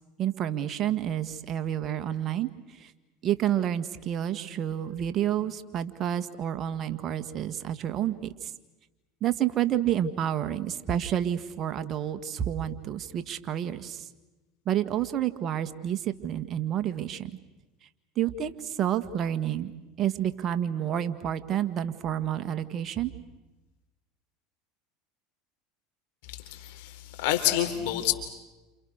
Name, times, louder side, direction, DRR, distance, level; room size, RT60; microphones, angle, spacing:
voice 1, 0.2-2.9 3.2-8.5 9.2-14.1 14.6-17.3 18.1-19.7 20.0-23.1, right 10 dB, 45° right, 10 dB, 1.8 m, -29 dB
voice 2, 26.3-28.1, left 12 dB, 70° left, 6 dB, 4.7 m, -28 dB
30.0 x 28.5 x 6.6 m, 1.1 s
hypercardioid pair, 90°, 0 cm